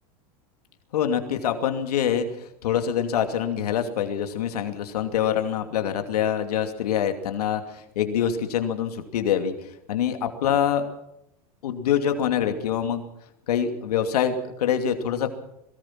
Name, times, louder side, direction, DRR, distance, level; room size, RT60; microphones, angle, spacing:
voice 1, 0.9-9.5 9.9-10.9 11.6-13.0 13.5-15.3, left 9 dB, 80° left, 7 dB, 2.7 m, -25 dB
22.5 x 19.0 x 6.0 m, 0.81 s
hypercardioid pair, 110°, 19 cm